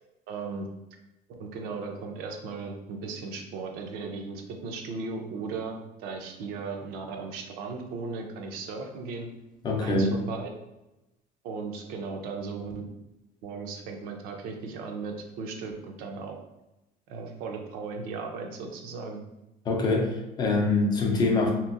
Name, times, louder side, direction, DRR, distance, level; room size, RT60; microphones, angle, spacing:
voice 1, 0.3-0.7 1.3-9.3 9.8-10.5 11.4-12.7 13.4-16.4 17.1-19.2, right 4 dB, 80° right, 3 dB, 0.6 m, -36 dB
voice 2, 9.6-10.4 19.7-21.5, left 3 dB, 30° left, 1 dB, 0.5 m, -25 dB
2.9 x 2.6 x 2.4 m, 0.94 s
cardioid pair, 160°, 15 cm